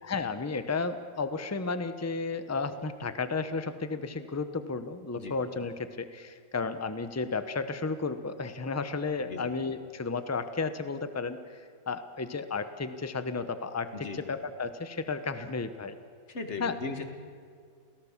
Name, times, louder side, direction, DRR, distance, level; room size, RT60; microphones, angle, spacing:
voice 1, 0.0-16.0 16.6-16.7, left 4 dB, 15° left, 11 dB, 0.6 m, -33 dB
voice 2, 16.3-17.0, left 4 dB, 35° left, 6 dB, 2.0 m, -37 dB
28.5 x 18.0 x 7.4 m, 2.2 s
omnidirectional pair, 2.1 m